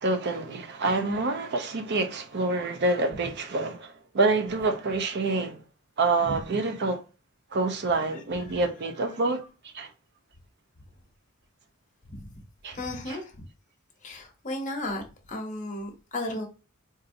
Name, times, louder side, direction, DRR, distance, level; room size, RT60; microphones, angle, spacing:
voice 1, 0.0-5.6 6.0-7.0 7.5-9.5 9.7-9.9 12.6-12.8 13.1-13.2, right 3 dB, 50° right, 0.6 m, -27 dB
voice 2, 12.7-13.5 14.0-16.5, left 1 dB, 35° left, 0.9 m, -35 dB
3.9 x 2.6 x 2.5 m
head